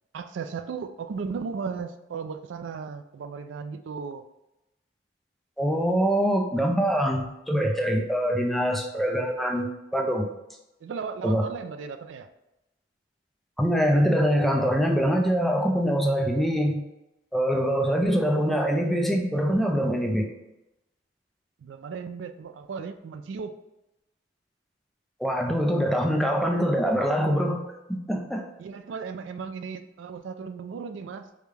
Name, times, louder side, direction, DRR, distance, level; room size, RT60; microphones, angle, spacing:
voice 1, 0.1-4.2 10.8-12.3 21.6-23.6 28.6-31.3, right 5 dB, 90° right, 8 dB, 0.3 m, -36 dB
voice 2, 5.6-10.3 11.2-11.5 13.6-16.8 17.3-20.3 25.2-28.5, equal, ahead, 2 dB, 0.4 m, -24 dB
4.9 x 2.1 x 3.3 m, 0.92 s
head